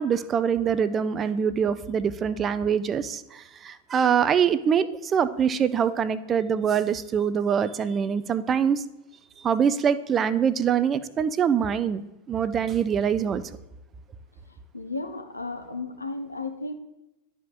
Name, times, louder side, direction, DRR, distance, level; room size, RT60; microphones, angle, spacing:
voice 1, 0.0-8.8 9.4-13.4, right 7 dB, 25° right, 14 dB, 0.4 m, -24 dB
voice 2, 14.7-16.7, left 3 dB, 80° left, 5 dB, 0.8 m, -34 dB
12.0 x 5.0 x 2.5 m, 0.95 s
figure-of-eight pair, 90°, 0 cm